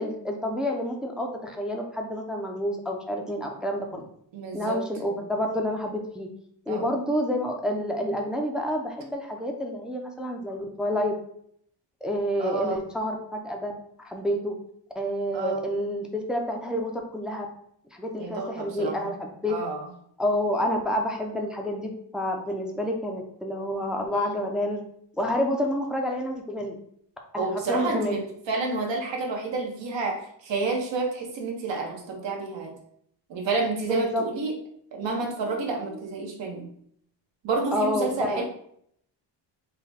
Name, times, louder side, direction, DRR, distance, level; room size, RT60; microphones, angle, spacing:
voice 1, 0.0-4.0 4.5-6.3 6.7-11.1 12.0-13.7 14.0-14.6 14.9-17.5 17.9-19.5 20.2-24.8 25.2-26.8 27.3-28.2 33.9-34.2 37.7-38.4, left 1 dB, ahead, 1 dB, 0.4 m, -29 dB
voice 2, 4.3-4.8 6.7-6.9 12.4-12.8 15.3-15.6 18.2-19.1 19.5-19.9 24.1-24.3 27.4-28.2 28.5-32.8 33.3-34.5 34.9-36.7 37.4-38.4, right 3 dB, 75° right, 1 dB, 1.1 m, -29 dB
4.0 x 2.2 x 4.1 m, 0.68 s
cardioid pair, 110°, 44 cm